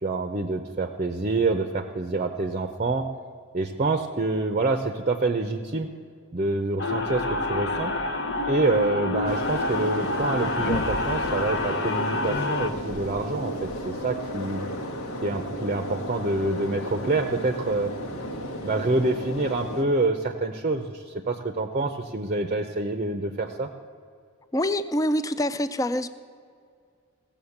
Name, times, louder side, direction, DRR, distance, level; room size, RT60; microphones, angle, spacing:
voice 1, 0.0-3.1 3.5-5.9 6.3-7.9 8.5-14.7 15.2-17.9 18.6-23.7, right 2 dB, 35° right, 6 dB, 0.6 m, -26 dB
sound 1, 6.8-12.7, left 2 dB, 55° left, 0.8 m, -28 dB
sound 2, 9.3-19.8, equal, 85° left, 1.4 m, -34 dB
voice 2, 24.5-26.1, left 1 dB, 15° left, 13 dB, 0.4 m, -25 dB
16.0 x 7.2 x 7.1 m, 2.2 s
head